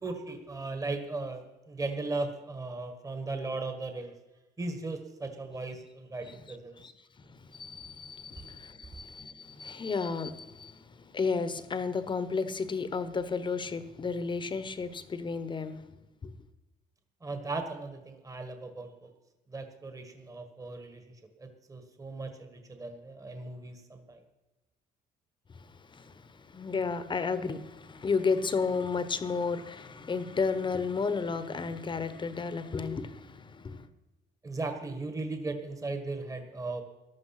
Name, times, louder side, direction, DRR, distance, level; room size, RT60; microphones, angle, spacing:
voice 1, 0.0-4.1 4.6-6.8 17.2-19.1 19.5-21.0 21.4-24.2 34.4-36.8, right 3 dB, 20° right, 1.6 m, -37 dB
voice 2, 7.2-15.9 16.2-16.3 25.5-33.9, left 4 dB, 30° left, 1.1 m, -33 dB
14.5 x 11.0 x 5.9 m
cardioid pair, 110°, 17 cm